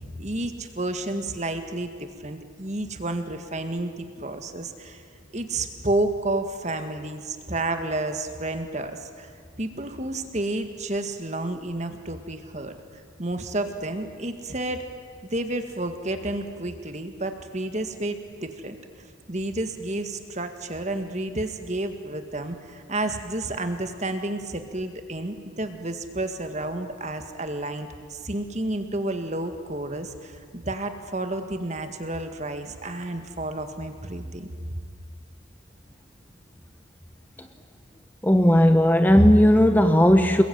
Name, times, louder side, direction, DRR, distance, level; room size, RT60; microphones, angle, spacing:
voice 1, 0.2-5.0 5.3-9.3 9.6-12.8 13.2-14.8 15.2-18.8 19.3-34.5, right 2 dB, 35° right, 7 dB, 1.9 m, -30 dB
voice 2, 38.2-40.4, equal, 10° left, 7 dB, 1.0 m, -16 dB
27.5 x 21.5 x 9.4 m, 2.1 s
head